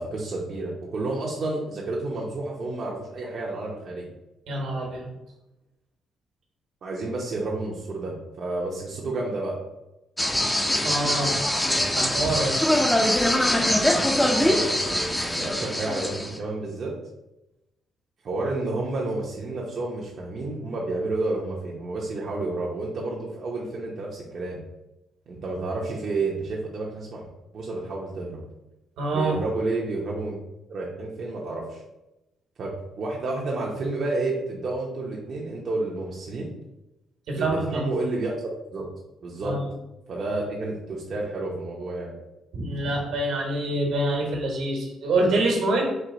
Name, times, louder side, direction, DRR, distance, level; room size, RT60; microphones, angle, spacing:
voice 1, 0.0-4.1 6.8-9.6 14.3-16.9 18.2-24.6 25.3-27.3 27.5-28.4 29.1-30.4 30.7-31.8 32.6-32.7 33.0-36.5 37.3-38.3 38.7-38.9 39.2-39.6 40.1-42.2, right 2 dB, 55° right, -4 dB, 0.8 m, -30 dB
voice 2, 4.5-5.1 10.8-11.3 11.9-12.6 29.0-29.4 37.3-37.9 39.4-39.7 42.5-45.9, right 2 dB, 80° right, 0 dB, 1.4 m, -26 dB
sound 1, 10.2-16.4, left 1 dB, 10° left, 0.6 m, -23 dB
4.5 x 2.7 x 3.9 m, 0.94 s
cardioid pair, 90°, 0 cm